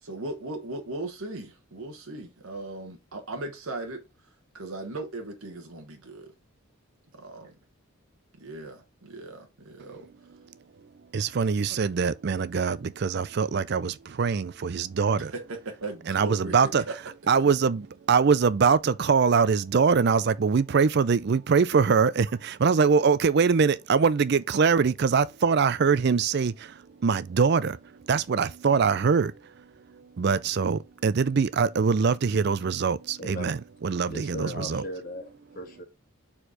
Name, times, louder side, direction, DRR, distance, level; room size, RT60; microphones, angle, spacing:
voice 1, 0.0-6.3 7.1-7.6 8.4-10.1 15.2-17.0, right 2 dB, 75° right, 1.2 m, -38 dB
voice 2, 11.1-15.3 16.1-16.8 17.3-34.8, right 5 dB, 50° right, 0.4 m, -23 dB
voice 3, 33.2-33.6 34.1-35.3 35.5-35.8, left 1 dB, 40° left, 1.4 m, -37 dB
4.6 x 4.4 x 4.9 m
head